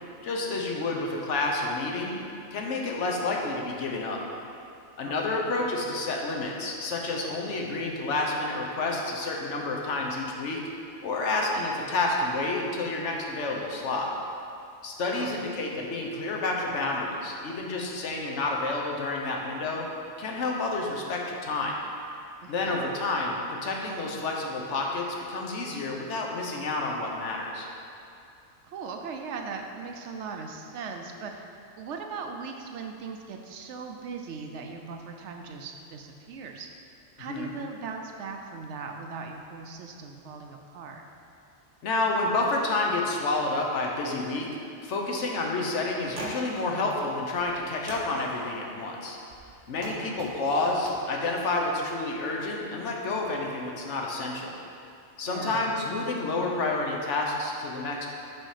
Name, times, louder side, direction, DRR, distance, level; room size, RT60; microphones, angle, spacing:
voice 1, 0.2-2.2 2.5-4.2 5.0-10.6 11.0-14.1 14.8-19.9 20.2-21.8 22.5-27.7 37.3-37.5 41.8-44.5 44.8-49.2 49.7-54.5 55.2-58.1, left 2 dB, 70° left, 0 dB, 1.1 m, -29 dB
voice 2, 5.0-5.5 15.1-15.4 22.4-22.8 28.6-31.5 31.8-36.8 37.2-41.0 49.8-50.2 55.2-55.6, right 5 dB, 70° right, 3 dB, 0.9 m, -39 dB
sound 1, 45.8-45.9 46.1-46.7 47.3-47.6 47.9-48.4 49.3-51.6, right 2 dB, 40° right, 0.6 m, -42 dB
6.2 x 4.3 x 4.9 m, 2.6 s
omnidirectional pair, 1.3 m